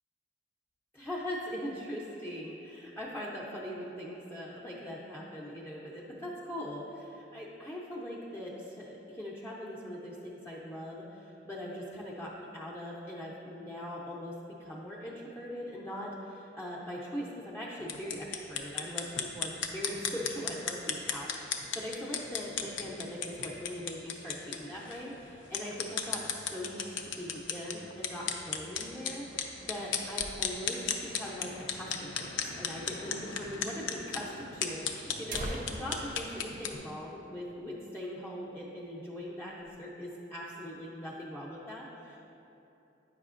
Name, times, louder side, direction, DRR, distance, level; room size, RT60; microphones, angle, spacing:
voice 1, 0.9-14.3 14.6-32.1 32.4-39.5 39.8-42.2, equal, 15° left, -6 dB, 0.5 m, -41 dB
sound 1, 17.8-36.8, left 6 dB, 80° left, 0.5 m, -37 dB
sound 2, 29.1-30.9 31.3-31.4 31.6-31.7 32.3-32.4 33.3-33.5 33.8-33.9 34.6-34.7 35.1-37.7 38.0-38.1 38.5-38.8 39.2-39.8, right 1 dB, 45° right, 0.5 m, -44 dB
8.8 x 5.6 x 2.5 m, 3.0 s
head